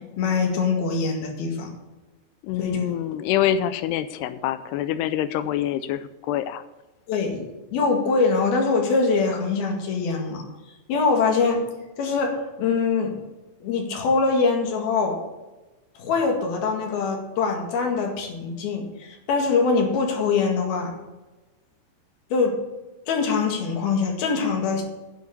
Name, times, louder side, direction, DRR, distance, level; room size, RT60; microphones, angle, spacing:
voice 1, 0.2-1.7 2.6-2.8 7.1-7.4 7.7-10.4 10.9-11.6 12.0-13.1 13.6-15.2 16.0-20.9 22.3-22.5 23.1-24.8, left 4 dB, 65° left, 2 dB, 3.6 m, -23 dB
voice 2, 2.5-6.0 6.3-6.6, left 11 dB, 80° left, 12 dB, 2.6 m, -25 dB
9.6 x 7.3 x 8.0 m, 1.1 s
omnidirectional pair, 5.0 m